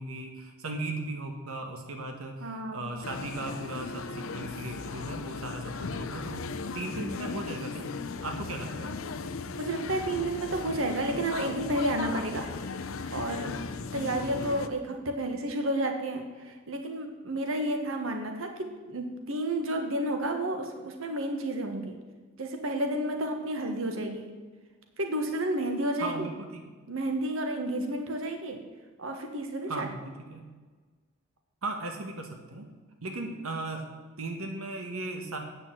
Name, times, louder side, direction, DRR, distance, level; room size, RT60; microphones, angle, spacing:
voice 1, 0.0-6.5 6.7-7.9 8.2-9.0 26.0-26.6 29.7-30.5 31.6-32.7 33.0-33.8 34.2-35.4, right 2 dB, 85° right, 4 dB, 1.2 m, -37 dB
voice 2, 2.4-2.9 9.5-12.5 13.1-13.6 13.9-22.0 22.4-24.3 25.0-26.3 26.9-28.6 29.0-29.9, right 1 dB, 70° right, 5 dB, 1.3 m, -31 dB
sound 1, 3.0-14.7, left 4 dB, 70° left, 0.6 m, -37 dB
8.9 x 6.9 x 7.5 m, 1.4 s
head